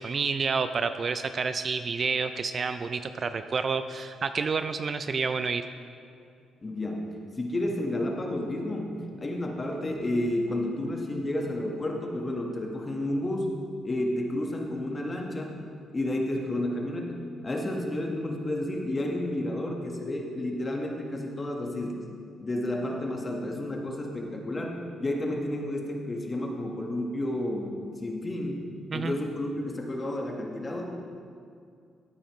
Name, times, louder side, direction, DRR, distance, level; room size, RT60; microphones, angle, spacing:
voice 1, 0.0-5.7 28.9-29.2, right 5 dB, 45° right, 10 dB, 0.4 m, -29 dB
voice 2, 6.6-7.1 7.4-13.5 13.8-15.6 15.9-22.0 22.4-28.6 28.9-31.0, left 1 dB, 30° left, 1 dB, 1.5 m, -31 dB
14.0 x 8.6 x 3.2 m, 2.4 s
cardioid pair, 90°, 0 cm